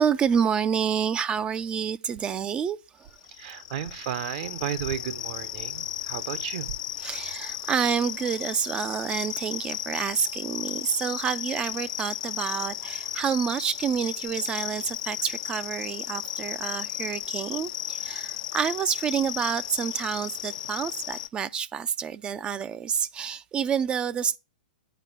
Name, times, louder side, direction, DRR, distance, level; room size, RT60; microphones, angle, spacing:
voice 1, 0.0-3.2 7.0-24.4, right 7 dB, 20° right, 0.3 m, -28 dB
sound 1, 3.1-21.3, left 12 dB, 60° left, 0.4 m, -35 dB
voice 2, 3.3-6.8, right 10 dB, 55° right, 0.8 m, -33 dB
9.2 x 4.9 x 4.6 m
hypercardioid pair, 120°, 5 cm